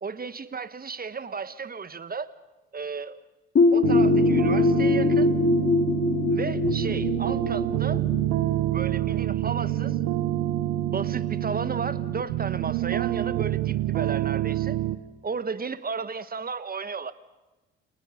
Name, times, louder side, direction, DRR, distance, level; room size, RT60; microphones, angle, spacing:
voice 1, 0.0-2.3 2.7-3.2 3.7-5.3 6.3-8.0 8.7-10.0 10.9-14.8 15.2-17.1, right 5 dB, 30° right, 13 dB, 1.5 m, -34 dB
sound 1, 3.6-9.1, left 4 dB, 40° left, 3.2 m, -23 dB
sound 2, 3.8-15.0, right 14 dB, 70° right, 1.2 m, -27 dB
30.0 x 24.5 x 5.3 m, 1.1 s
hypercardioid pair, 60°, 32 cm